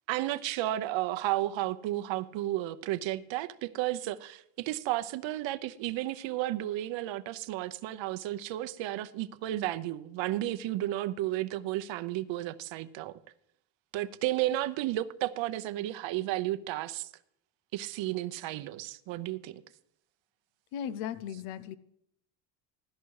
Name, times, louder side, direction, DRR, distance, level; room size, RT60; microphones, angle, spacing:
voice 1, 0.1-13.1 13.9-17.1 17.7-19.6, right 15 dB, 65° right, 0.8 m, -33 dB
voice 2, 20.7-21.8, left 9 dB, 80° left, 0.9 m, -36 dB
16.0 x 12.5 x 4.7 m
cardioid pair, 135°, 49 cm